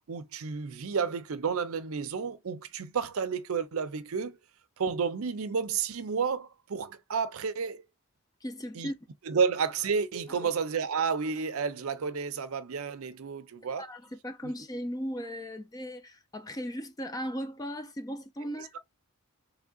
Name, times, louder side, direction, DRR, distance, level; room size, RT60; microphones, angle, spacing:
voice 1, 0.1-4.4 4.8-7.8 8.7-8.9 9.3-13.8, right 6 dB, 75° right, 0.5 m, -31 dB
voice 2, 8.4-8.9 10.3-10.5 13.8-18.7, equal, 15° left, 0.4 m, -37 dB
3.7 x 3.3 x 2.3 m
head